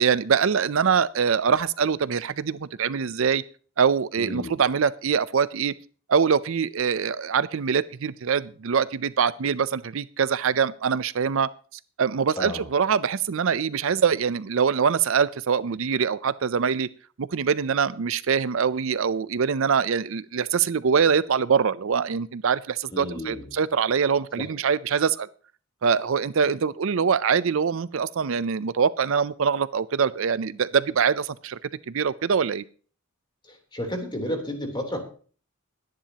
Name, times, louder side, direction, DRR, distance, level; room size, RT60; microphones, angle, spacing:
voice 1, 0.0-3.4 3.8-5.7 6.1-11.5 12.0-16.9 17.2-25.3 25.8-31.6 31.9-32.6, right 6 dB, 65° right, 17 dB, 0.5 m, -23 dB
voice 2, 4.2-4.5 12.4-12.6 22.9-23.5 24.4-24.5 33.4-35.0, equal, 20° left, 3 dB, 3.3 m, -32 dB
21.0 x 10.5 x 2.9 m, 0.40 s
head